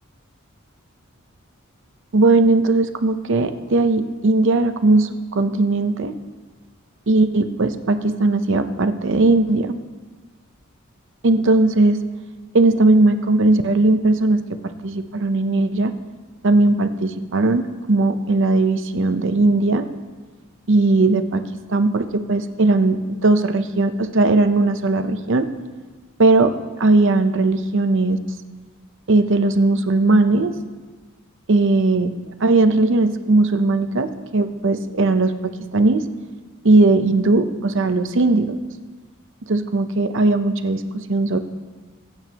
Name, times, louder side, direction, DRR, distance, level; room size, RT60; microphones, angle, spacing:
voice 1, 2.1-6.1 7.1-9.8 11.2-12.0 12.5-14.4 14.8-15.9 16.4-19.9 20.7-21.4 21.7-25.5 26.2-26.5 26.8-28.2 29.1-30.5 31.5-32.1 32.4-36.0 36.6-38.6 39.5-41.4, right 2 dB, 60° right, 9 dB, 0.7 m, -18 dB
21.0 x 8.8 x 2.9 m, 1.4 s
head